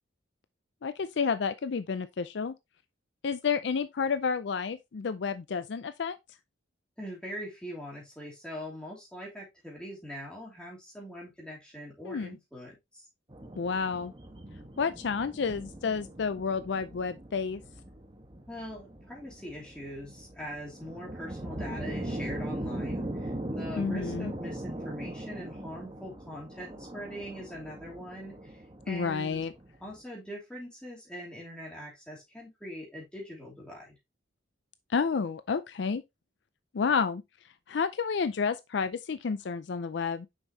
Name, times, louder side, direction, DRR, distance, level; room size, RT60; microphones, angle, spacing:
voice 1, 0.8-2.5 3.2-6.2 12.0-12.4 13.6-14.1 14.8-17.6 23.8-24.3 28.9-29.5 34.9-36.0 36.7-37.2 37.7-40.3, left 5 dB, 65° left, 0.4 m, -30 dB
voice 2, 7.0-13.1 18.5-29.5 29.8-34.0, equal, 5° left, 3.0 m, -42 dB
sound 1, 13.3-30.0, right 1 dB, 25° right, 1.2 m, -40 dB
6.4 x 5.4 x 2.8 m
head